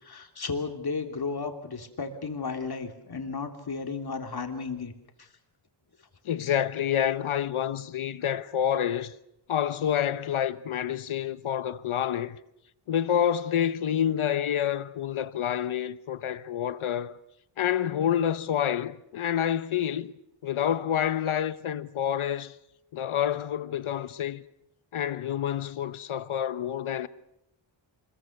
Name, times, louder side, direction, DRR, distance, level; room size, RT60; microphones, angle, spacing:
voice 1, 0.0-4.9 5.2-5.3, left 4 dB, 50° left, 3.1 m, -34 dB
voice 2, 6.2-9.1 9.5-12.4 12.9-17.2 17.6-20.1 20.4-22.6 22.9-24.4 24.9-27.1, left 9 dB, 75° left, 1.1 m, -28 dB
26.0 x 22.0 x 6.6 m
wide cardioid pair, 90°, 50 cm